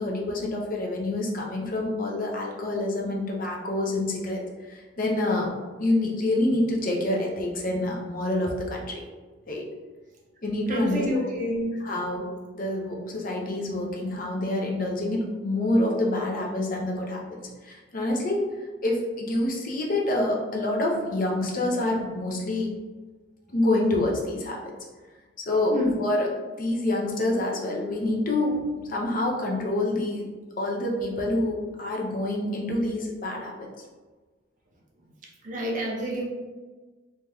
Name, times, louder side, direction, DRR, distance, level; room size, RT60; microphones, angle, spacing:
voice 1, 0.0-4.4 4.7-9.0 9.5-9.7 10.4-11.0 11.8-12.3 12.5-17.2 17.6-18.4 18.8-22.7 23.5-24.7 25.4-26.3 26.6-30.2 30.6-33.7, left 1 dB, 45° left, -1 dB, 0.6 m, -27 dB
voice 2, 10.7-11.7 25.7-26.0 35.4-36.2, equal, 45° right, -2 dB, 0.6 m, -28 dB
2.7 x 2.3 x 3.3 m, 1.3 s
head